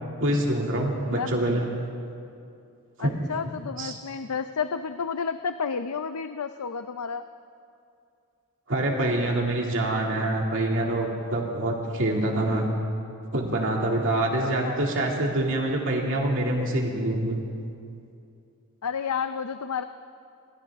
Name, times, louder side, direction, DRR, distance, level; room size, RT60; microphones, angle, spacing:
voice 1, 0.2-1.7 3.0-3.1 3.8-4.0 8.7-12.7 13.3-17.4, right 1 dB, 60° right, -1 dB, 2.5 m, -25 dB
voice 2, 1.1-1.5 3.0-7.3 14.4-14.8 18.8-19.8, left 6 dB, 90° left, 10 dB, 0.6 m, -31 dB
29.5 x 26.0 x 3.6 m, 2.5 s
head